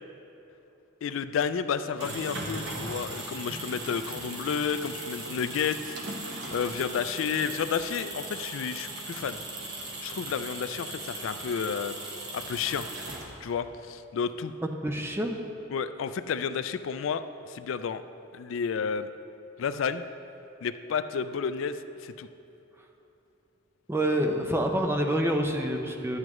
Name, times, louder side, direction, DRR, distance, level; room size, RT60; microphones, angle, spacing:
voice 1, 1.0-6.0 6.5-9.4 10.0-12.0 12.3-12.9 13.4-14.5 15.7-18.0 18.3-19.1 19.6-20.0 20.6-22.3, left 6 dB, 75° left, 11 dB, 0.3 m, -31 dB
sound 1, 1.8-13.6, right 2 dB, 60° right, 1.3 m, -38 dB
voice 2, 14.6-15.4 23.9-26.2, right 1 dB, 10° right, 3 dB, 0.6 m, -27 dB
12.0 x 9.7 x 3.1 m, 2.9 s
head